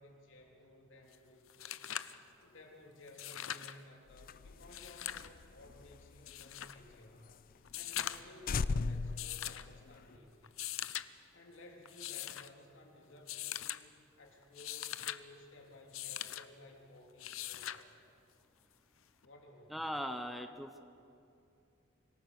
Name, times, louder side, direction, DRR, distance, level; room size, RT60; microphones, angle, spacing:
voice 1, 0.0-1.8 2.4-7.3 7.7-10.6 11.3-18.0 19.2-19.8, left 1 dB, 65° left, 1 dB, 3.3 m, -57 dB
sound 1, 1.1-1.2 1.5-2.2 3.1-3.8 4.6-5.3 6.3-6.8 7.6-8.4 9.2-9.7 10.4-11.1 11.9-12.5 13.3-13.8 14.4-15.2 15.9-16.4 17.2-17.8 19.2-19.3, left 12 dB, 90° left, 0.7 m, -41 dB
sound 2, 4.1-7.0 7.3-7.4 7.7-7.8 8.1-8.2 8.5-10.2, left 4 dB, 45° left, 0.4 m, -38 dB
voice 2, 19.7-20.8, equal, ahead, 7 dB, 0.7 m, -39 dB
25.5 x 18.0 x 6.5 m, 2.6 s
head